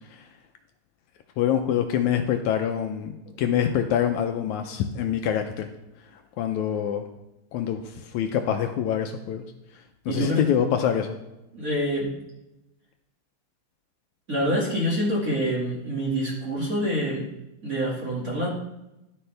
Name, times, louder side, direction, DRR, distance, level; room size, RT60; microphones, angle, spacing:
voice 1, 1.4-3.1 3.4-5.7 6.4-7.0 7.5-7.8 8.1-9.4 10.1-11.2, left 9 dB, 80° left, 6 dB, 1.8 m, -25 dB
voice 2, 10.1-10.4 11.5-12.1 14.3-17.3 17.6-18.5, equal, 30° right, -5 dB, 1.9 m, -26 dB
11.5 x 10.0 x 3.3 m, 0.92 s
omnidirectional pair, 3.8 m